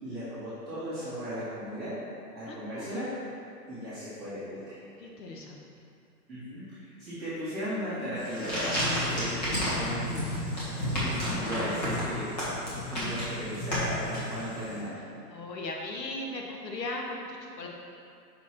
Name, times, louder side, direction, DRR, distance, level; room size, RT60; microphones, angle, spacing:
voice 1, 0.0-2.0 2.3-3.1 3.7-4.8 6.3-10.6 11.0-12.4 12.6-15.0, equal, ahead, -21 dB, 1.1 m, -36 dB
voice 2, 2.5-3.0 5.0-5.6 15.3-17.7, left 2 dB, 80° left, 0 dB, 1.3 m, -38 dB
sound 1, 8.2-14.7, equal, 25° left, 1.3 m, -31 dB
5.9 x 4.4 x 4.3 m, 2.5 s
hypercardioid pair, 175°, 50 cm